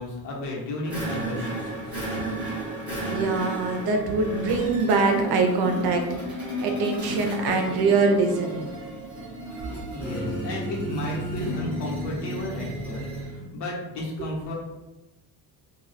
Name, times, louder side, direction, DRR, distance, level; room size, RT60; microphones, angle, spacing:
voice 1, 0.0-2.0 9.9-14.5, left 2 dB, 85° left, -3 dB, 1.0 m, -33 dB
sound 1, 0.8-13.4, right 1 dB, 5° right, 0.8 m, -32 dB
voice 2, 3.0-6.0 6.6-8.7, right 3 dB, 65° right, 3 dB, 0.6 m, -23 dB
2.3 x 2.1 x 3.9 m, 1.0 s
cardioid pair, 175°, 40 cm